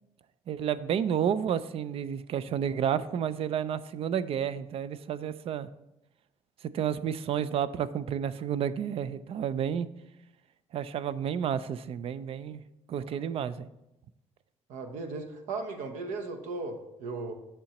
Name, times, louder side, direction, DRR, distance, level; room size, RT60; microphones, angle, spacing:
voice 1, 0.5-5.7 6.7-9.9 10.7-12.6 12.9-13.7, right 8 dB, 50° right, 16 dB, 0.4 m, -31 dB
voice 2, 14.7-17.3, right 3 dB, 90° right, 7 dB, 0.9 m, -37 dB
8.5 x 6.8 x 2.9 m, 0.89 s
cardioid pair, 130°, 12 cm